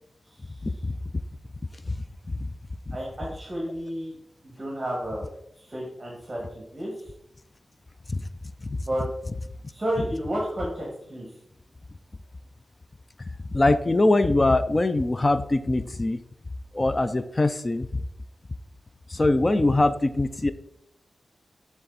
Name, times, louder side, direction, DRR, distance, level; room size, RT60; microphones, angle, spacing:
voice 1, 2.9-4.2 4.4-5.3 5.6-6.9 8.8-9.1 9.7-11.2, right 1 dB, 25° right, -3 dB, 2.0 m, -31 dB
voice 2, 13.5-16.2 16.7-18.0 19.1-20.5, left 2 dB, 30° left, 12 dB, 0.4 m, -22 dB
9.5 x 3.5 x 4.1 m, 0.75 s
wide cardioid pair, 75°, 0 cm